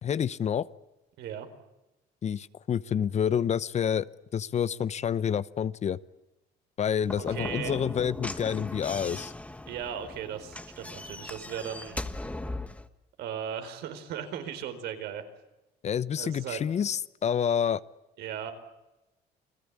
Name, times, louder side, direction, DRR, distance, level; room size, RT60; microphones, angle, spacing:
voice 1, 0.0-0.7 2.2-4.1 4.3-6.0 6.8-9.3 15.8-17.8, left 8 dB, 40° left, 17 dB, 0.8 m, -28 dB
Slam / Knock, 7.0-12.9, left 2 dB, 10° left, 1.4 m, -39 dB
voice 2, 7.2-7.8 9.7-12.0 13.2-15.2 16.2-16.6 18.2-18.5, right 9 dB, 80° right, 7 dB, 4.4 m, -37 dB
29.5 x 20.0 x 8.6 m, 0.98 s
cardioid pair, 110°, 17 cm